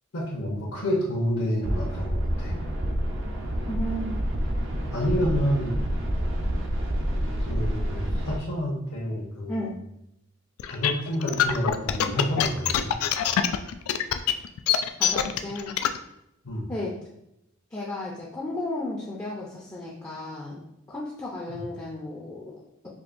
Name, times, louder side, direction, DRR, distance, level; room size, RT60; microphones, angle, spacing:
voice 1, 0.1-2.6 4.7-5.8 7.5-9.7 10.7-12.9 16.4-16.7 21.5-21.6, equal, 60° left, -5 dB, 0.9 m, -29 dB
sound 1, 1.6-8.4, equal, 65° right, 0.6 m, -28 dB
voice 2, 3.7-4.1 9.5-9.7 15.0-15.7 16.7-16.9 17.7-20.6 20.9-22.9, left 1 dB, 15° left, -4 dB, 0.5 m, -34 dB
sound 2, 10.6-16.0, left 10 dB, 90° left, 0.3 m, -24 dB
5.0 x 2.6 x 2.5 m, 0.81 s
head